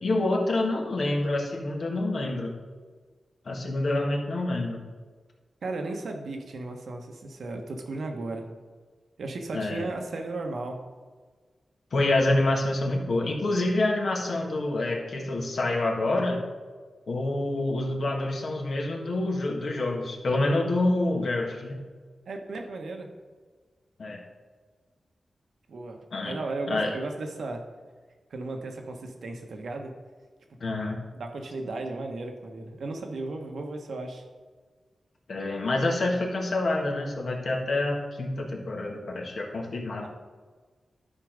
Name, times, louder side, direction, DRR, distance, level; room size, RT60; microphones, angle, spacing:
voice 1, 0.0-2.5 3.4-4.8 9.5-9.9 11.9-16.4 17.1-21.8 24.0-24.2 26.1-26.3 26.7-26.9 30.6-31.0 35.3-40.1, left 2 dB, 70° left, 0 dB, 1.6 m, -27 dB
voice 2, 5.6-8.5 9.2-10.8 22.3-23.1 25.7-26.0 26.2-27.6 28.3-29.9 31.1-34.3 40.0-40.1, right 2 dB, 80° right, 3 dB, 1.2 m, -35 dB
11.0 x 4.6 x 5.2 m, 1.4 s
cardioid pair, 70°, 0 cm